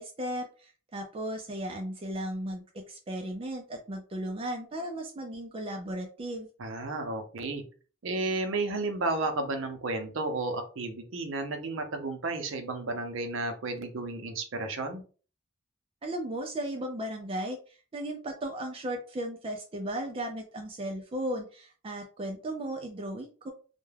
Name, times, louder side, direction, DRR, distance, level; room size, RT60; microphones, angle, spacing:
voice 1, 0.0-6.5 16.0-23.5, right 1 dB, 25° right, 3 dB, 0.3 m, -36 dB
voice 2, 6.6-7.6 8.0-15.0, right 2 dB, 70° right, 6 dB, 0.6 m, -32 dB
2.3 x 2.1 x 3.2 m, 0.38 s
head